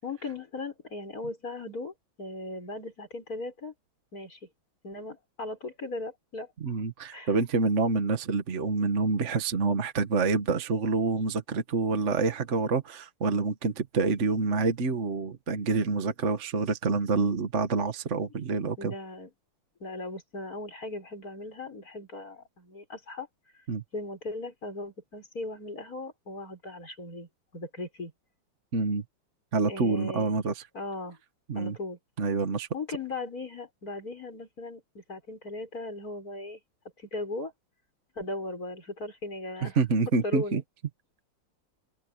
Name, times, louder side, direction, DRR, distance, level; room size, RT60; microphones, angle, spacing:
voice 1, 0.0-3.7 4.1-4.4 4.8-6.8 7.1-7.3 18.8-19.3 19.8-23.3 23.9-28.1 29.7-30.3 30.7-31.2 31.5-32.0 32.7-36.6 37.0-37.5 38.2-39.8 40.2-40.6, left 2 dB, 45° left, 6.7 m, -38 dB
voice 2, 6.6-18.9 23.7-23.8 28.7-29.0 29.5-30.6 31.5-31.8 32.2-32.7 39.6-40.6, right 4 dB, 40° right, 1.7 m, -27 dB
open air
omnidirectional pair, 2.2 m